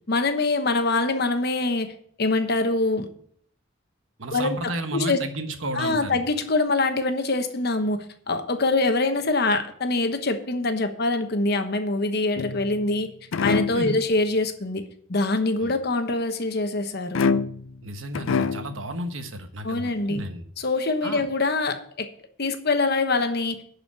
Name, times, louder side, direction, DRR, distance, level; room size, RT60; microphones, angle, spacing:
voice 1, 0.1-1.9 2.2-3.1 4.3-5.2 5.7-13.1 13.4-14.8 15.1-17.2 19.6-20.2 20.6-22.1 22.4-23.6, left 2 dB, 55° left, 8 dB, 1.1 m, -24 dB
voice 2, 4.2-6.2 13.7-13.9 15.6-15.7 17.8-20.4 21.0-21.3, right 1 dB, 80° right, 7 dB, 1.3 m, -32 dB
sound 1, 12.4-12.9 13.3-13.9 17.1-17.8 18.1-18.8, left 5 dB, 85° left, 0.5 m, -25 dB
11.0 x 5.0 x 7.1 m, 0.62 s
head